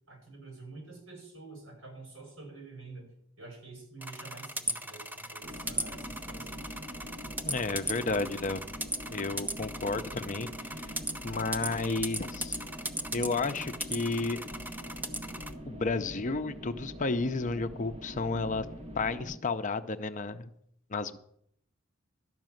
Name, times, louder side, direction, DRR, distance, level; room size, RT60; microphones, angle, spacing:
voice 1, 0.1-3.1 3.4-6.6, right 3 dB, 75° right, 0 dB, 6.2 m, -48 dB
sound 1, 4.0-15.5, right 1 dB, 10° right, 0.8 m, -37 dB
sound 2, 5.4-19.4, equal, 30° right, 1.1 m, -44 dB
voice 2, 7.4-8.6 9.1-10.5 10.8-10.9 11.2-12.6 13.1-14.4 15.7-18.7 18.9-20.5 20.9-21.2, left 3 dB, 40° left, 9 dB, 0.6 m, -32 dB
12.5 x 6.1 x 9.1 m, 0.71 s
head